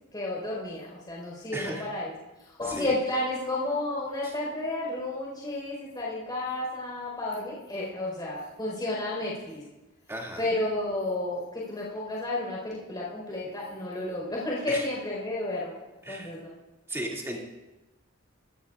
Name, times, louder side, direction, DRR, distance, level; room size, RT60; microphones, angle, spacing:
voice 1, 0.1-2.1 2.6-9.6 10.4-16.5, left 2 dB, 20° left, -5 dB, 4.6 m, -32 dB
voice 2, 1.5-1.9 2.6-3.0 4.2-4.3 10.1-10.5 14.7-14.9 16.0-16.3 16.9-17.4, right 1 dB, 15° right, -2 dB, 2.4 m, -35 dB
25.0 x 13.5 x 2.5 m, 1.0 s
head